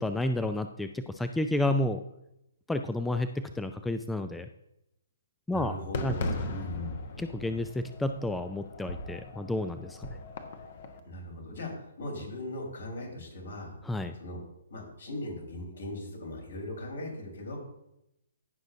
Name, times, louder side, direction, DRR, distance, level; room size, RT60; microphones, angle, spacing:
voice 1, 0.0-2.0 2.7-4.5 5.5-5.8 6.0-6.1 7.2-10.1 13.8-14.1, left 1 dB, 5° left, 8 dB, 0.4 m, -31 dB
voice 2, 5.5-7.0 11.0-13.7 14.2-14.4 14.7-17.6, left 1 dB, 65° left, 0 dB, 3.9 m, -39 dB
Fireworks, 5.9-11.0, left 2 dB, 50° left, 1.1 m, -38 dB
16.5 x 6.1 x 2.6 m, 0.83 s
figure-of-eight pair, 130°, 0 cm